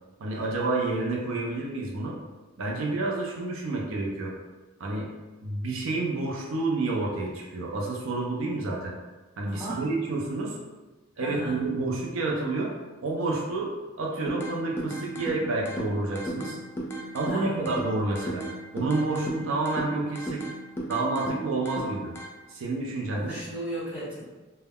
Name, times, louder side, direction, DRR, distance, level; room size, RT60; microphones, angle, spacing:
voice 1, 0.2-2.2 2.6-4.3 4.8-5.1 5.4-8.9 9.4-10.5 11.2-12.7 13.0-13.7 14.0-16.6 17.1-18.5 18.7-20.4 20.9-22.1 22.5-23.4, right 2 dB, 80° right, -1 dB, 0.4 m, -29 dB
voice 2, 9.5-9.9 11.1-11.6 17.2-17.7 23.1-24.2, right 1 dB, 5° right, -11 dB, 1.1 m, -36 dB
sound 1, 14.3-22.3, right 1 dB, 10° left, 0.3 m, -36 dB
2.3 x 2.1 x 3.4 m, 1.2 s
head